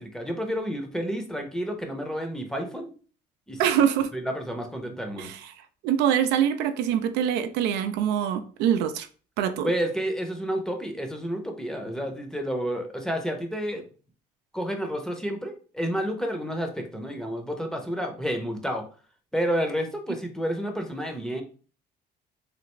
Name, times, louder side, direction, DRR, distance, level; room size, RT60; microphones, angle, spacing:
voice 1, 0.0-2.9 3.5-3.9 4.1-5.3 9.6-13.9 14.5-18.8 19.3-21.4, equal, 5° left, 0.6 m, -30 dB
voice 2, 3.6-4.1 5.2-5.4 5.8-9.1 9.4-9.7, right 9 dB, 85° right, 0.4 m, -24 dB
3.2 x 2.4 x 3.0 m
cardioid pair, 110°, 17 cm